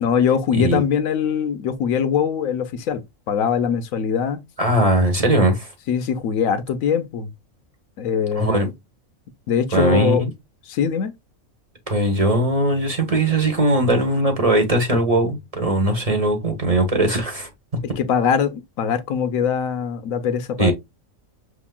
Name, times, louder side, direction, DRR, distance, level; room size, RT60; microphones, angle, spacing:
voice 1, 0.0-4.4 5.9-7.3 8.0-8.7 9.5-10.2 10.7-11.1 18.0-20.7, left 7 dB, 80° left, 1.1 m, -22 dB
voice 2, 4.6-5.7 8.4-8.7 9.7-10.3 11.9-17.5 20.6-20.7, right 1 dB, 30° right, 1.0 m, -19 dB
6.4 x 2.9 x 2.2 m
omnidirectional pair, 1.4 m